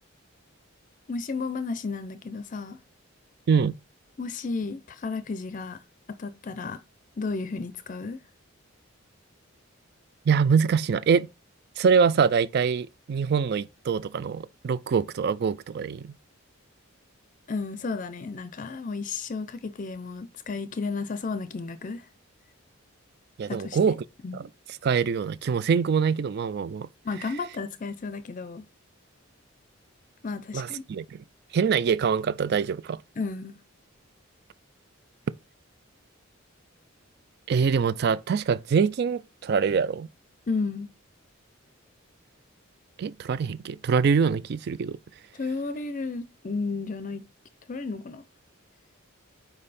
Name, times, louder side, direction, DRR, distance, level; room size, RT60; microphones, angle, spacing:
voice 1, 1.1-2.8 4.2-5.8 6.1-6.8 7.2-8.2 17.5-22.1 23.5-24.0 24.2-24.4 27.0-28.7 30.2-30.8 33.2-33.6 40.5-40.9 45.4-47.2 47.7-48.2, left 4 dB, 40° left, 0.5 m, -33 dB
voice 2, 10.3-11.3 11.8-16.1 23.4-24.0 24.3-24.5 24.8-26.9 30.5-31.2 31.5-33.0 37.5-40.1 43.0-45.0, right 6 dB, 50° right, 0.3 m, -24 dB
5.4 x 4.6 x 4.1 m
head